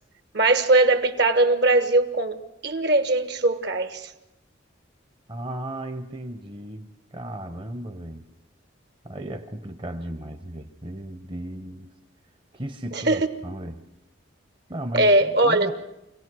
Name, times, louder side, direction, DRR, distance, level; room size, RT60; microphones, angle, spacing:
voice 1, 0.3-2.4 2.6-4.1 12.9-13.2 14.9-15.7, right 2 dB, 60° right, 9 dB, 1.3 m, -20 dB
voice 2, 5.3-8.2 9.0-11.9 12.5-13.8 14.7-15.7, right 1 dB, 25° right, 6 dB, 0.8 m, -35 dB
25.0 x 17.5 x 6.3 m, 0.91 s
head